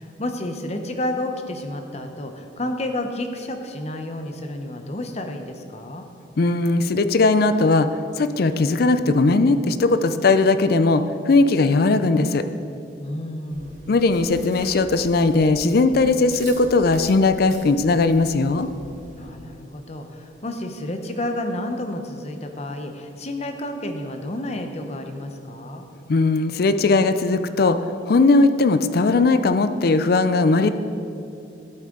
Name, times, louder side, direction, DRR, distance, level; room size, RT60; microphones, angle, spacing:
voice 1, 0.0-6.0 13.0-13.8 19.2-25.8, left 1 dB, 35° left, 5 dB, 0.8 m, -30 dB
voice 2, 6.4-7.9 8.2-12.4 13.9-18.7 26.1-27.8 28.0-30.7, left 3 dB, 55° left, 11 dB, 0.4 m, -18 dB
Chewing mastication, 13.5-19.3, right 1 dB, 45° right, 1.2 m, -43 dB
11.5 x 8.5 x 3.8 m, 2.6 s
head